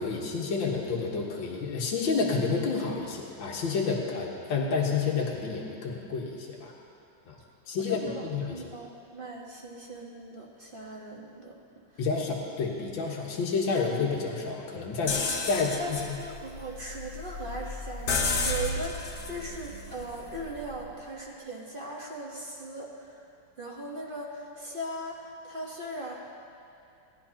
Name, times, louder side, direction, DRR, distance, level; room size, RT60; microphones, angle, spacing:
voice 1, 0.0-6.7 7.3-7.4 7.7-8.0 8.3-8.6 12.0-15.2 15.5-16.2, left 4 dB, 75° left, -2 dB, 2.1 m, -29 dB
voice 2, 7.8-11.5 15.5-15.9 16.2-23.2 23.6-26.1, right 1 dB, 30° right, -3 dB, 1.2 m, -39 dB
sound 1, 15.1-20.9, left 3 dB, 55° left, 1.4 m, -33 dB
18.5 x 12.0 x 2.9 m, 2.6 s
omnidirectional pair, 2.2 m